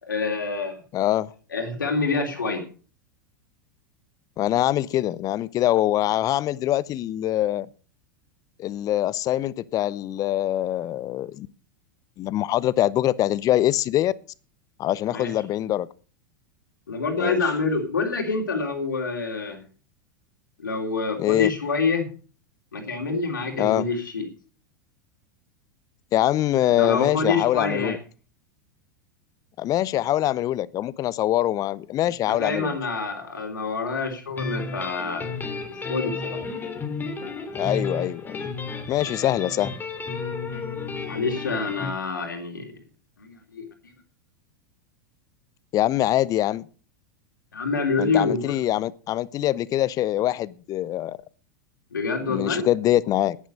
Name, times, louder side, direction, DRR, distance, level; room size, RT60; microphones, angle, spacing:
voice 1, 0.0-0.8 1.5-2.6 15.1-15.3 16.9-19.6 20.6-22.1 22.7-24.2 26.7-28.0 32.0-35.3 35.9-36.4 41.1-42.7 43.2-43.9 47.5-48.6 51.9-52.7, left 4 dB, 80° left, 3.5 m, -27 dB
voice 2, 0.9-1.3 4.4-7.7 8.6-11.5 12.2-14.1 14.8-15.9 17.2-17.4 21.2-21.5 23.6-23.9 26.1-28.0 29.6-32.8 37.5-38.5 38.9-39.7 45.7-46.7 48.0-51.2 52.3-53.4, left 13 dB, 35° left, 0.7 m, -24 dB
sound 1, 34.4-41.9, left 3 dB, 20° left, 3.2 m, -32 dB
10.5 x 10.0 x 6.7 m
figure-of-eight pair, 90°, 10 cm